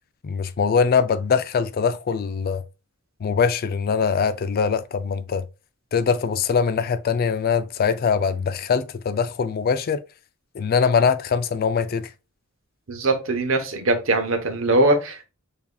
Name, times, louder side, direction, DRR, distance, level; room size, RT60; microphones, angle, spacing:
voice 1, 0.2-2.6 3.2-5.4 5.9-10.0 10.5-12.1, left 6 dB, 45° left, 0.3 m, -22 dB
voice 2, 12.9-15.2, right 2 dB, 70° right, 0.9 m, -21 dB
7.0 x 2.7 x 2.2 m
head